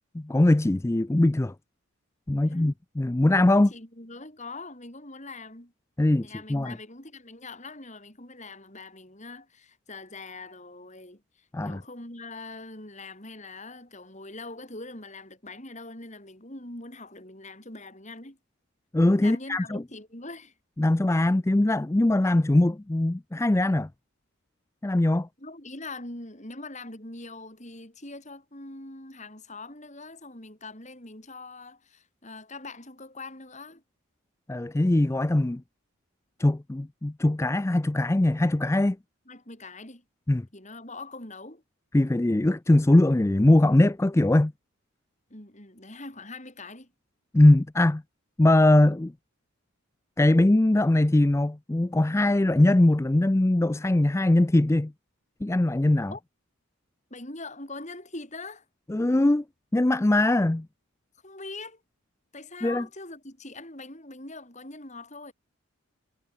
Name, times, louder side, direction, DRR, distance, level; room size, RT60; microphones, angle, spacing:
voice 1, 0.1-1.5 2.3-3.7 6.0-6.8 11.5-11.8 18.9-19.8 20.8-23.9 24.8-25.3 34.5-35.6 36.4-39.0 40.3-40.5 41.9-44.5 47.3-48.0 48.4-49.1 50.2-54.9 55.4-56.1 58.9-59.4 59.7-60.7 62.6-62.8, left 1 dB, 10° left, 0.3 m, -21 dB
voice 2, 3.6-5.7 6.2-18.4 19.2-20.5 25.4-33.8 39.3-40.0 40.5-41.6 45.3-46.9 56.1-56.2 57.1-58.6 61.2-61.8 62.3-65.3, left 2 dB, 35° left, 4.9 m, -42 dB
head